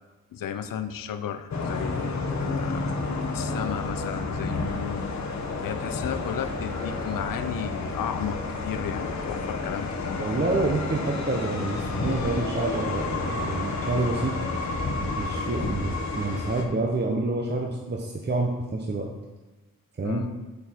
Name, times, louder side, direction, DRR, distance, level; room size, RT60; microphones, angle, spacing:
voice 1, 0.3-2.9 3.3-5.1 5.6-10.3 20.0-20.4, left 9 dB, 85° left, 11 dB, 0.6 m, -34 dB
sound 1, 1.5-16.7, left 3 dB, 55° left, 1.1 m, -30 dB
voice 2, 10.2-14.3 15.2-19.1 19.9-20.2, right 2 dB, 30° right, 0 dB, 0.9 m, -28 dB
6.9 x 6.6 x 4.5 m, 1.2 s
cardioid pair, 75°, 33 cm